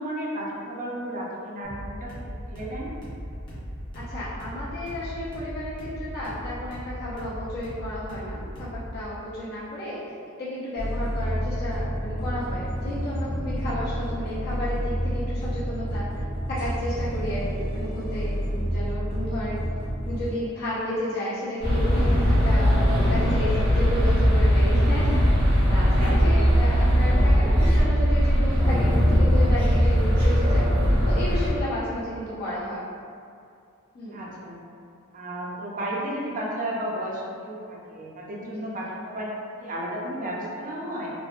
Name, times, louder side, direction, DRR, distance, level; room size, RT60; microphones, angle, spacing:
voice 1, 0.0-2.9 34.1-34.6 35.1-41.1, right 1 dB, 35° right, -4 dB, 0.5 m, -33 dB
sound 1, 1.6-9.0, equal, 20° left, 0.9 m, -38 dB
voice 2, 3.9-10.1 10.4-16.0 16.5-19.6 20.1-22.7 23.1-25.3 25.7-30.7 31.1-32.8 33.9-34.2 38.5-38.6, left 1 dB, 50° left, -10 dB, 0.5 m, -32 dB
sound 2, 10.8-20.3, equal, 80° left, 1.2 m, -29 dB
sound 3, 21.6-31.5, equal, 90° right, 1.0 m, -20 dB
3.1 x 2.1 x 2.4 m, 2.4 s
head